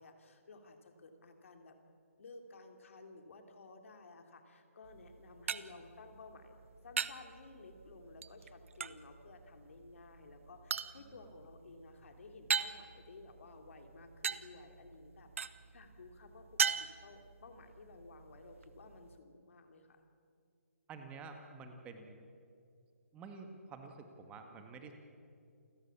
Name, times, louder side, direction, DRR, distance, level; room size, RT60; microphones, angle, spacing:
voice 1, 0.0-6.6 6.8-20.0, left 3 dB, 60° left, 5 dB, 3.1 m, -55 dB
sound 1, 4.8-19.2, right 6 dB, 60° right, 1.0 m, -41 dB
voice 2, 20.9-22.3 23.1-24.9, right 4 dB, 15° right, 5 dB, 1.8 m, -49 dB
29.0 x 16.5 x 7.3 m, 2.4 s
hypercardioid pair, 145°, 8 cm